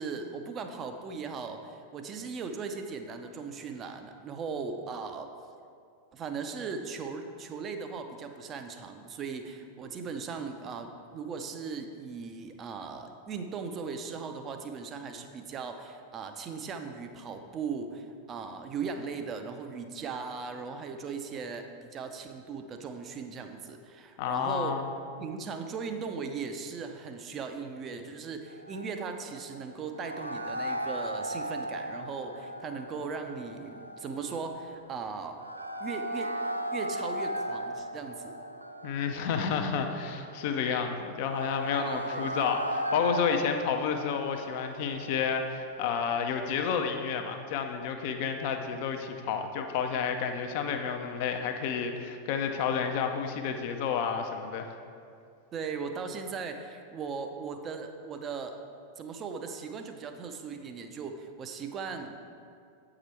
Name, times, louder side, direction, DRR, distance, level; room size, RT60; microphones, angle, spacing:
voice 1, 0.0-5.3 6.1-24.8 25.2-35.4 35.8-36.4 36.7-38.3 41.8-42.3 55.5-58.6 59.0-62.2, right 5 dB, 30° right, 6 dB, 0.6 m, -38 dB
voice 2, 24.2-24.9 38.8-54.7, left 6 dB, 45° left, 5 dB, 0.5 m, -30 dB
sound 1, 28.5-46.9, equal, 85° right, 0.3 m, -37 dB
8.1 x 4.9 x 4.3 m, 2.4 s
figure-of-eight pair, 90°, 0 cm